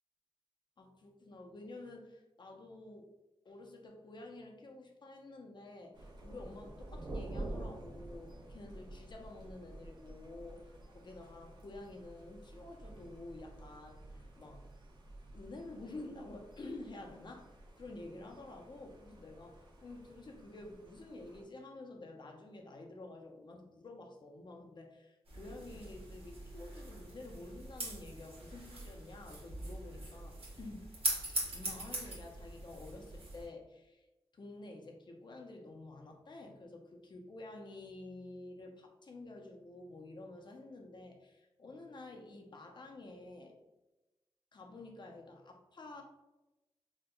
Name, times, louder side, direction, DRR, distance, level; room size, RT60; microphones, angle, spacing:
voice 1, 0.8-3.1 3.4-14.6 15.3-30.9 31.5-34.1 34.3-43.5 44.5-46.0, left 2 dB, 50° left, 2 dB, 0.6 m, -50 dB
Thunder, 5.9-21.4, right 1 dB, 50° right, 0.6 m, -49 dB
sound 1, 25.3-33.4, right 2 dB, 75° right, 1.0 m, -42 dB
4.3 x 2.2 x 2.2 m, 1.0 s
cardioid pair, 75°, 10 cm